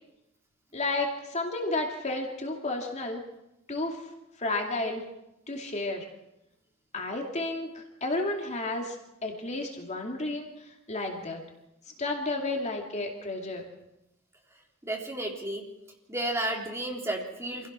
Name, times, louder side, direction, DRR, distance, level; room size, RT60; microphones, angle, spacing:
voice 1, 0.7-3.2 3.7-4.0 4.4-5.0 5.5-6.1 6.9-9.0 9.2-10.5 10.9-11.4 12.0-13.6, left 2 dB, 30° left, 1 dB, 2.5 m, -32 dB
voice 2, 14.8-15.6 16.1-17.7, right 1 dB, 15° right, 0 dB, 3.4 m, -32 dB
26.5 x 16.5 x 6.2 m, 0.90 s
head